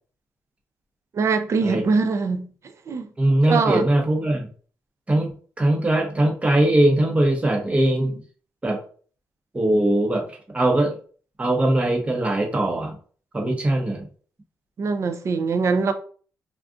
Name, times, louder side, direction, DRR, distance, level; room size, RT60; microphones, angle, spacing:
voice 1, 1.1-2.5 2.9-3.1 3.4-3.8 14.8-15.9, right 4 dB, 50° right, 0.4 m, -22 dB
voice 2, 3.2-4.5 5.1-5.3 5.6-8.2 8.6-8.8 9.5-10.2 10.5-11.0 11.4-13.0 13.3-14.1, right 1 dB, 20° right, 0.8 m, -20 dB
3.5 x 2.4 x 2.5 m
cardioid pair, 120°, 7 cm